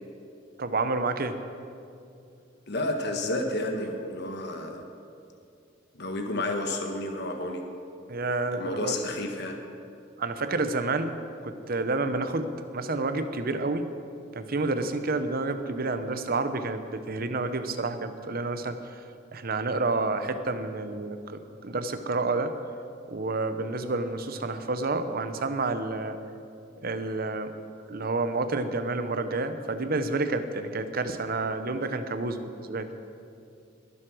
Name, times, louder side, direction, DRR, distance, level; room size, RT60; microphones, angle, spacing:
voice 1, 0.6-1.4 8.1-9.0 10.2-11.2 11.4-13.9 14.3-18.8 19.3-22.5 23.1-26.2 26.8-27.5 27.9-32.9, right 3 dB, 50° right, 9 dB, 0.9 m, -29 dB
voice 2, 2.7-4.8 6.0-7.6 8.5-9.6, left 1 dB, 60° left, 4 dB, 1.3 m, -31 dB
21.5 x 7.8 x 6.2 m, 2.5 s
head